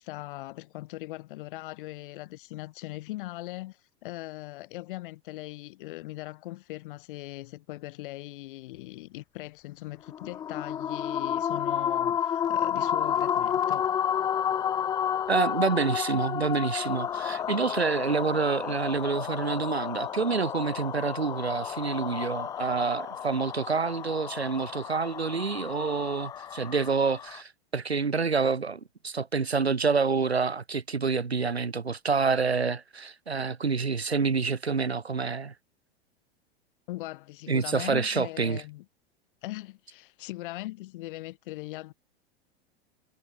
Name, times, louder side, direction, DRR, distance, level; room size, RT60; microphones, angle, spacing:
voice 1, 0.0-13.9 36.9-38.8 39.4-41.9, left 18 dB, 55° left, 3.1 m, -40 dB
sound 1, 10.1-27.4, left 9 dB, 15° left, 0.4 m, -31 dB
voice 2, 15.3-35.5 37.5-38.6, right 5 dB, 85° right, 1.9 m, -27 dB
figure-of-eight pair, 90°, 31 cm